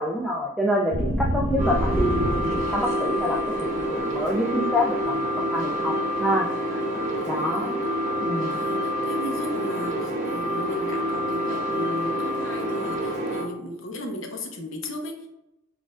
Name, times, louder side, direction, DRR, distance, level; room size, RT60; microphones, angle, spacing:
voice 1, 0.0-2.4 2.7-5.2 5.5-6.8 7.3-7.7 8.2-8.6, equal, ahead, -4 dB, 0.3 m, -27 dB
sound 1, 0.9-2.9 3.3-3.8, right 1 dB, 85° right, 0.9 m, -26 dB
sound 2, 1.6-13.5, equal, 40° right, 0.8 m, -27 dB
voice 2, 7.2-7.8 8.5-15.3, equal, 75° left, 2 dB, 0.8 m, -36 dB
6.0 x 2.5 x 2.4 m, 0.89 s
head